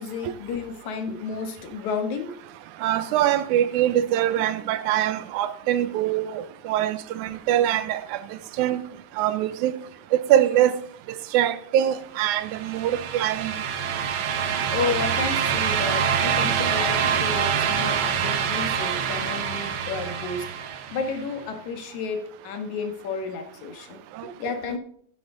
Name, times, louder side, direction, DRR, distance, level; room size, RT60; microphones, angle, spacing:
voice 1, 0.0-2.4 14.7-20.5 20.9-24.0 24.4-24.8, left 5 dB, 75° left, 2.7 m, -31 dB
voice 2, 2.8-8.8 9.2-9.7 10.1-10.7 11.1-13.6 24.1-24.3, right 11 dB, 85° right, 2.1 m, -23 dB
sound 1, 12.3-21.2, right 7 dB, 65° right, 1.4 m, -25 dB
12.5 x 9.9 x 3.8 m
omnidirectional pair, 3.4 m